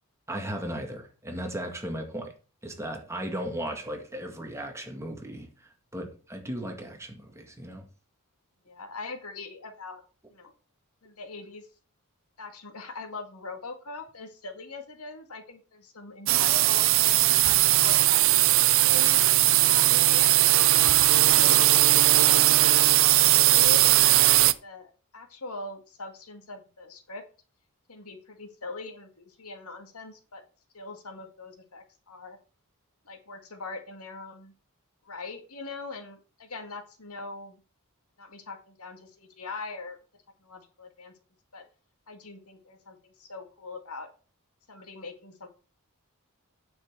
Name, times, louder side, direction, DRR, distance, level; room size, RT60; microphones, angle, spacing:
voice 1, 0.3-2.3 2.6-7.9, right 1 dB, 15° right, 1.9 m, -36 dB
voice 2, 8.7-10.0 10.3-10.5 11.0-11.7 12.4-16.8 17.4-18.2 18.8-19.2 19.7-20.8 21.2-24.3 24.6-27.2 27.9-30.4 30.7-32.4 33.1-34.5 35.1-37.6 38.2-40.0 40.4-41.1 41.5-41.6 42.1-44.1 44.7-45.5, left 3 dB, 80° left, 2.0 m, -41 dB
sound 1, 16.3-24.5, right 15 dB, 65° right, 0.6 m, -19 dB
9.2 x 7.1 x 4.6 m
head